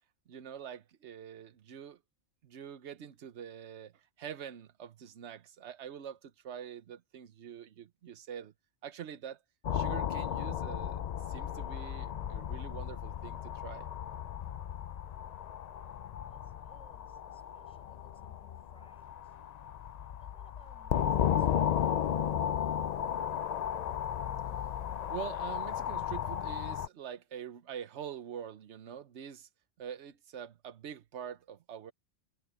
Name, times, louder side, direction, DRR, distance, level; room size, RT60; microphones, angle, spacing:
voice 1, 0.3-2.0 2.4-8.5 8.8-9.4 9.7-11.0 11.3-13.9 25.1-29.5 29.8-31.9, right 8 dB, 80° right, 1.2 m, -45 dB
sound 1, 9.6-26.9, left 9 dB, 60° left, 0.4 m, -34 dB
voice 2, 15.8-19.4 19.8-22.1, equal, 5° left, 6.1 m, -66 dB
omnidirectional pair, 1.2 m